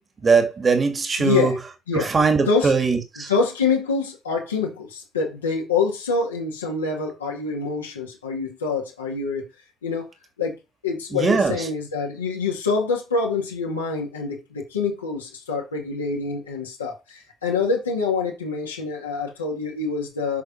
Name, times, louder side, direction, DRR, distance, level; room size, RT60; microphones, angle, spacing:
voice 1, 0.2-1.5 1.9-3.3 11.1-11.6, right 4 dB, 35° right, 2.7 m, -20 dB
voice 2, 1.2-1.6 1.9-2.1 2.4-2.7 3.2-9.4 9.8-10.1 10.4-10.6 10.8-20.4, left 4 dB, 85° left, 2.1 m, -25 dB
8.2 x 6.4 x 5.0 m
figure-of-eight pair, 50°, 0 cm